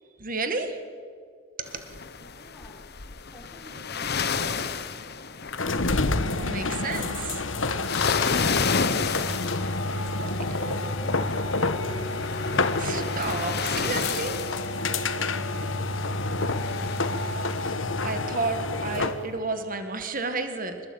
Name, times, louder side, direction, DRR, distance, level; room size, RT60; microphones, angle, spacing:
voice 1, 0.2-0.8 1.6-1.9 6.4-7.4 12.4-14.6 14.9-15.1 17.6-20.8, right 3 dB, 45° right, 7 dB, 1.8 m, -32 dB
sound 1, 1.7-17.7, left 5 dB, 55° left, 1.2 m, -32 dB
voice 2, 2.2-2.8 3.3-4.9 10.1-12.6 16.3-17.0, equal, 10° left, -6 dB, 5.4 m, -46 dB
sound 2, 5.5-19.3, left 2 dB, 70° left, 1.4 m, -28 dB
26.5 x 20.5 x 8.9 m, 2.1 s
head